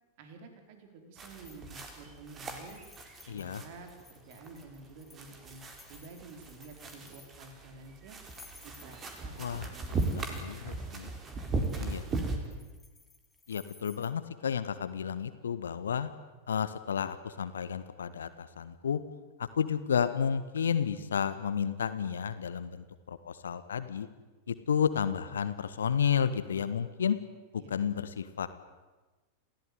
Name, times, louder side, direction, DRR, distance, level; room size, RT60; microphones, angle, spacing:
voice 1, 0.2-2.8 3.3-5.6 5.9-8.2 8.6-9.3 9.7-10.8 12.1-12.7 25.2-25.4 27.6-27.7, right 3 dB, 50° right, 6 dB, 4.2 m, -50 dB
sound 1, 1.2-12.4, right 3 dB, 25° right, 4.3 m, -38 dB
sound 2, 1.4-2.0 2.3-7.5 8.1-9.4 9.8-10.5 11.5-14.1, left 4 dB, 10° left, 3.2 m, -58 dB
voice 2, 3.3-3.6 9.4-11.1 11.8-12.0 13.5-16.1 16.5-19.0 19.6-24.1 24.5-27.2 27.7-28.5, left 7 dB, 65° left, 12 dB, 1.6 m, -32 dB
27.5 x 17.0 x 9.5 m, 1.2 s
figure-of-eight pair, 90°, 0 cm